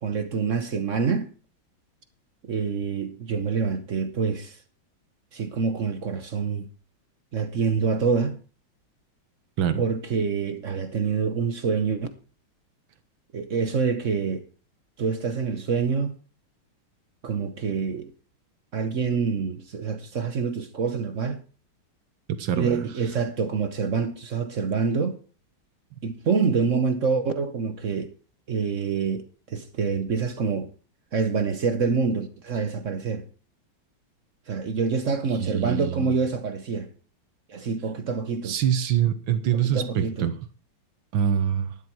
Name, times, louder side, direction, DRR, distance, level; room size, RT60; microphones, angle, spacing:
voice 1, 0.0-1.3 2.4-4.6 5.3-6.7 7.3-8.4 9.8-12.1 13.3-14.4 15.0-16.1 17.2-18.1 18.7-21.4 22.6-25.2 26.0-28.1 28.5-30.7 31.1-33.3 34.5-36.9 37.5-38.5 39.5-40.3, right 5 dB, 50° right, 1.0 m, -26 dB
voice 2, 22.4-22.9 35.4-36.1 38.4-40.3 41.1-41.7, right 9 dB, 75° right, 1.8 m, -24 dB
12.0 x 10.5 x 4.6 m
omnidirectional pair, 2.3 m